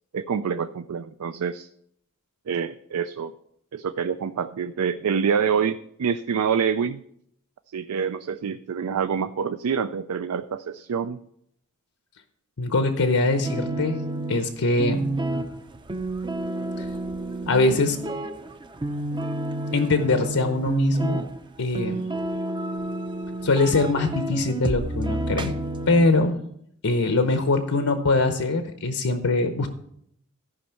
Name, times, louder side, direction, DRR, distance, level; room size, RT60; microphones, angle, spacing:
voice 1, 0.1-1.7 2.5-3.3 3.7-7.0 7.7-11.2, right 6 dB, 80° right, 11 dB, 0.4 m, -26 dB
voice 2, 12.6-14.0 14.3-15.2 16.8-16.9 17.5-18.0 19.7-21.2 21.6-22.1 23.4-25.5 25.9-26.4 26.8-29.7, left 3 dB, 75° left, 7 dB, 0.8 m, -22 dB
sound 1, 13.4-26.1, right 2 dB, 20° right, 0.5 m, -30 dB
14.0 x 5.3 x 5.7 m, 0.72 s
head